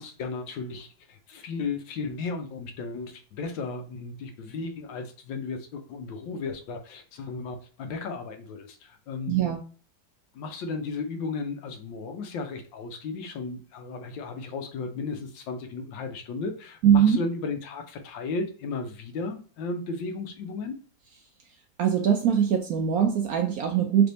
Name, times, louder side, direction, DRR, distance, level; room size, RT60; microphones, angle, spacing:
voice 1, 0.0-9.4 10.3-20.8, left 4 dB, 80° left, 6 dB, 1.5 m, -35 dB
voice 2, 9.3-9.6 16.8-17.2 21.8-24.1, right 8 dB, 70° right, 4 dB, 0.8 m, -22 dB
3.4 x 3.4 x 3.9 m, 0.40 s
omnidirectional pair, 2.0 m